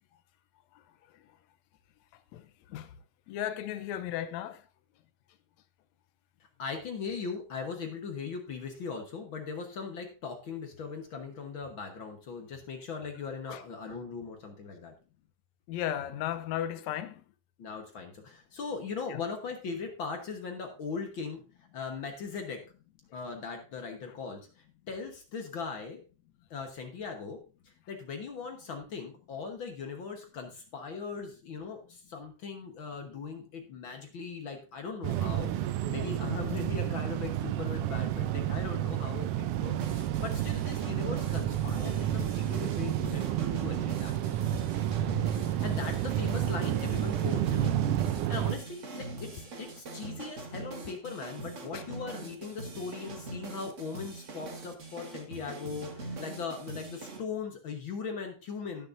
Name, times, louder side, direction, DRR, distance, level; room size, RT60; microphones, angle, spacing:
voice 1, 3.3-4.6 13.5-13.6 15.7-17.2 19.1-19.2 45.0-45.1 51.7-51.8, left 11 dB, 75° left, 1.9 m, -35 dB
voice 2, 6.6-14.9 17.6-21.4 21.7-22.6 23.1-26.0 26.5-27.4 27.6-44.1 45.3-47.7 48.3-58.9, left 5 dB, 50° left, 1.6 m, -39 dB
sound 1, 35.0-48.6, right 12 dB, 85° right, 2.1 m, -30 dB
sound 2, 39.7-57.2, right 3 dB, 50° right, 0.8 m, -42 dB
17.5 x 6.7 x 2.6 m
omnidirectional pair, 3.6 m